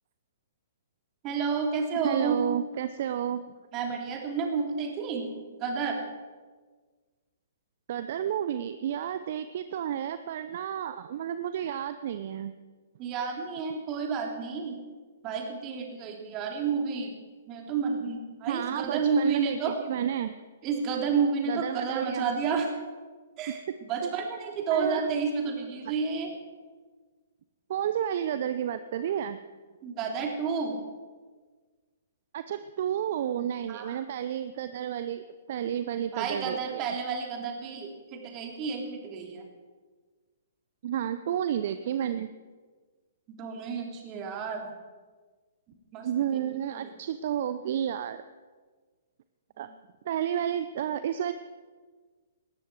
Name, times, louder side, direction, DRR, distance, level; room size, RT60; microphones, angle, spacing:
voice 1, 1.2-2.4 3.7-5.3 5.6-6.0 13.0-14.8 15.2-17.1 17.5-19.8 20.6-22.7 23.4-23.6 23.9-26.3 29.8-30.8 33.7-34.0 36.1-39.4 43.4-44.7 45.9-46.9 49.6-49.7, right 5 dB, 30° right, 3 dB, 3.0 m, -30 dB
voice 2, 2.0-3.4 7.9-12.5 18.4-20.4 21.5-22.2 23.5-23.6 24.7-25.1 27.7-29.4 32.3-36.9 40.8-42.3 46.0-48.2 49.6-49.7 50.1-51.3, right 10 dB, 50° right, 11 dB, 0.6 m, -31 dB
18.5 x 13.5 x 4.7 m, 1.4 s
figure-of-eight pair, 120°, 0 cm